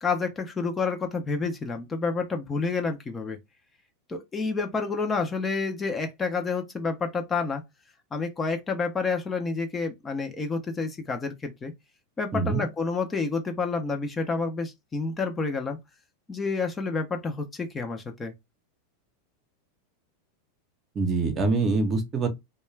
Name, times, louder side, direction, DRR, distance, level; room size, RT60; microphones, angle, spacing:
voice 1, 0.0-3.4 4.1-7.6 8.1-11.7 12.2-15.8 16.3-18.3, left 4 dB, 20° left, 0.6 m, -29 dB
voice 2, 12.3-12.6 20.9-22.3, right 3 dB, 30° right, 0.7 m, -24 dB
2.3 x 2.2 x 3.1 m
supercardioid pair, 130°, 0 cm